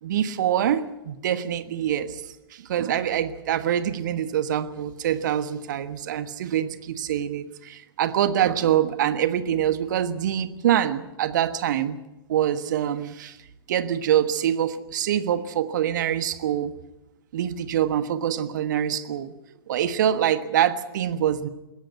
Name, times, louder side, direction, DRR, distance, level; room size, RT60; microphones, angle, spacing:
voice 1, 0.0-12.0 12.3-13.4 13.7-16.7 17.3-19.3 19.7-21.5, right 10 dB, 50° right, 12 dB, 1.4 m, -25 dB
21.0 x 17.0 x 8.0 m, 0.98 s
figure-of-eight pair, 110°, 13 cm